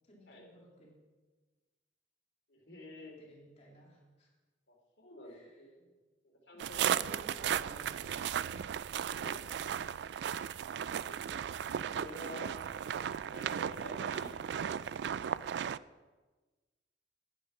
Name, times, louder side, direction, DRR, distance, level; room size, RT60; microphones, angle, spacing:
voice 1, 0.1-0.9 3.0-4.3 5.2-5.9 6.5-8.6, equal, 40° left, -2 dB, 2.3 m, -57 dB
voice 2, 2.5-3.1 4.7-5.7 6.2-7.0 9.0-9.8 11.0-11.2 11.9-12.5 13.3-15.1, left 1 dB, 75° left, 0 dB, 3.1 m, -50 dB
sound 1, 6.6-15.8, right 8 dB, 65° right, 0.3 m, -36 dB
10.0 x 9.9 x 5.6 m, 1.3 s
head